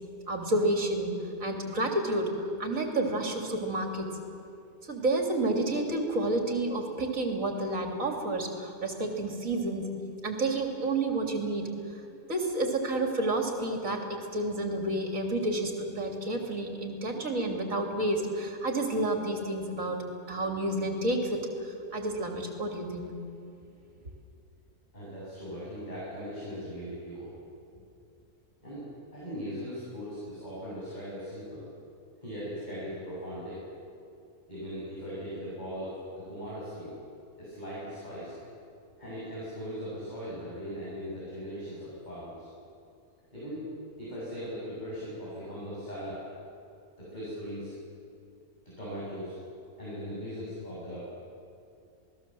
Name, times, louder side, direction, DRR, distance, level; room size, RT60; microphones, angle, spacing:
voice 1, 0.3-1.1 1.4-2.3 2.6-4.1 4.9-9.9 10.2-11.7 12.3-14.0 14.3-20.0 20.3-23.1, right 2 dB, 60° right, 3 dB, 3.5 m, -30 dB
voice 2, 24.9-27.3 28.6-31.6 32.2-33.6 34.5-37.0 37.4-38.3 39.0-42.5 43.3-43.7 44.0-46.2 47.0-47.7 48.8-49.4 49.8-51.1, equal, 30° left, -8 dB, 7.5 m, -39 dB
27.5 x 19.5 x 7.8 m, 2.5 s
omnidirectional pair, 1.5 m